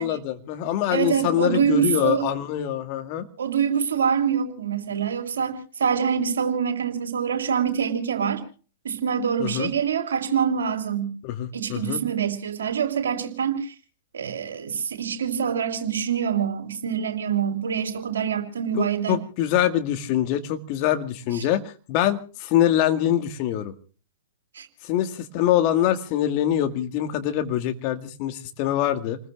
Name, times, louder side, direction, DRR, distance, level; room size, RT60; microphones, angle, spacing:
voice 1, 0.0-3.3 9.4-9.7 11.2-12.0 18.7-23.7 24.8-29.2, left 11 dB, 40° left, 6 dB, 1.9 m, -24 dB
voice 2, 0.9-2.2 3.4-8.4 8.8-11.2 11.5-13.7 14.1-19.2 21.3-21.4 24.5-24.7, right 7 dB, 65° right, 6 dB, 3.1 m, -25 dB
29.0 x 20.5 x 2.4 m, 0.38 s
figure-of-eight pair, 105°, 0 cm